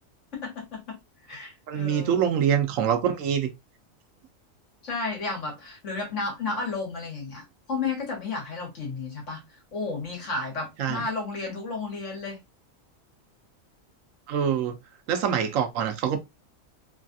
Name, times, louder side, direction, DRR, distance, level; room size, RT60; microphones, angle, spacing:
voice 1, 0.3-1.0 1.2-2.3 4.8-7.4 7.7-9.4 9.7-12.4, left 3 dB, 65° left, 1.5 m, -32 dB
voice 2, 1.7-3.5 10.8-11.0 14.3-14.8 15.1-16.2, right 8 dB, 75° right, 1.0 m, -25 dB
3.2 x 2.3 x 2.5 m
omnidirectional pair, 1.4 m